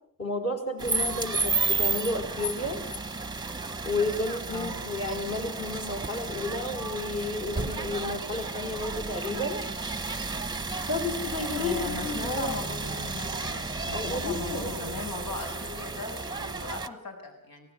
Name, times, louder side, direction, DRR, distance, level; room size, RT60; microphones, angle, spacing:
voice 1, 0.2-2.8 3.9-9.6 10.9-12.6 13.9-15.1, left 2 dB, 45° left, 3 dB, 5.2 m, -32 dB
sound 1, 0.8-16.9, right 3 dB, 10° right, 0.9 m, -32 dB
voice 2, 11.6-17.7, left 3 dB, 80° left, 3 dB, 7.4 m, -38 dB
26.5 x 18.0 x 8.2 m, 0.65 s
wide cardioid pair, 165°, 34 cm